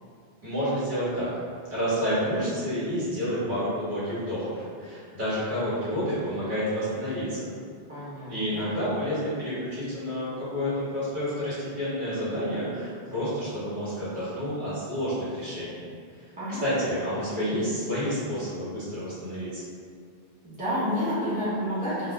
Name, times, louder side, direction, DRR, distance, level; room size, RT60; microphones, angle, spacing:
voice 1, 0.4-1.3 1.7-7.5 8.3-15.8 16.6-19.6, equal, 55° right, -12 dB, 1.2 m, -29 dB
voice 2, 7.9-8.7 16.4-16.6 20.4-22.1, equal, 10° right, -13 dB, 0.7 m, -30 dB
2.4 x 2.1 x 3.1 m, 2.2 s
omnidirectional pair, 1.1 m